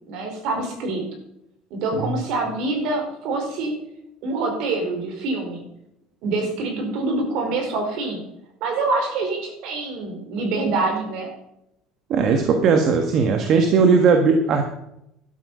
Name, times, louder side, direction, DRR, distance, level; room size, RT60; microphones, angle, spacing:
voice 1, 0.1-1.0 1.7-3.8 4.2-5.6 6.2-8.2 8.6-11.3, right 3 dB, 55° right, 3 dB, 4.7 m, -25 dB
voice 2, 12.1-14.6, right 5 dB, 40° right, 5 dB, 1.4 m, -18 dB
13.5 x 12.0 x 5.5 m, 0.81 s
cardioid pair, 165°, 0 cm